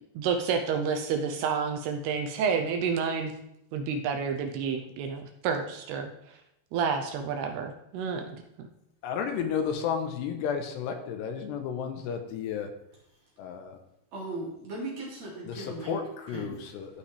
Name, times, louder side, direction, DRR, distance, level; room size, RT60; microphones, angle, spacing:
voice 1, 0.2-3.3 3.7-6.1 6.7-8.4, right 6 dB, 80° right, 5 dB, 2.6 m, -29 dB
voice 2, 9.0-12.7 13.4-13.8 15.5-17.0, left 7 dB, 80° left, 6 dB, 2.8 m, -32 dB
voice 3, 14.1-16.0 16.3-16.7, right 1 dB, 45° right, -4 dB, 3.2 m, -37 dB
14.5 x 5.7 x 3.3 m, 0.80 s
omnidirectional pair, 5.0 m